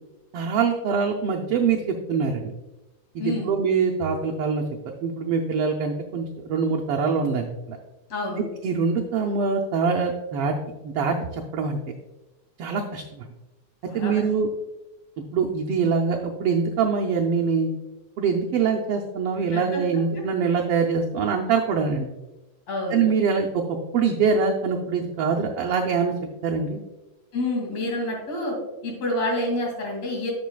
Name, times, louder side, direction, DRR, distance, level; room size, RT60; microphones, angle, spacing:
voice 1, 0.3-2.5 3.1-7.8 8.6-10.5 10.8-11.8 12.6-13.3 13.9-14.5 15.3-17.7 18.2-22.1 22.9-23.6 23.9-26.1 26.4-26.8, right 5 dB, 85° right, 1 dB, 1.3 m, -24 dB
voice 2, 3.2-3.5 8.1-8.4 13.9-14.1 19.5-19.8 20.1-20.2 22.7-23.0 27.3-28.6 28.8-30.3, left 1 dB, 60° left, -1 dB, 3.5 m, -28 dB
11.5 x 7.0 x 2.3 m, 1.1 s
omnidirectional pair, 3.4 m